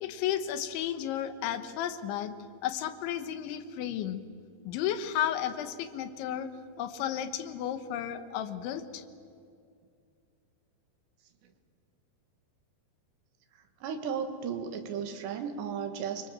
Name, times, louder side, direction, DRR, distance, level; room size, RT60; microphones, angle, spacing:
voice 1, 0.0-2.3 2.6-4.2 4.7-6.5 6.8-9.0, left 10 dB, 85° left, 10 dB, 3.6 m, -33 dB
voice 2, 13.8-16.3, right 7 dB, 75° right, 7 dB, 3.8 m, -35 dB
27.0 x 24.5 x 7.5 m, 2.4 s
omnidirectional pair, 5.2 m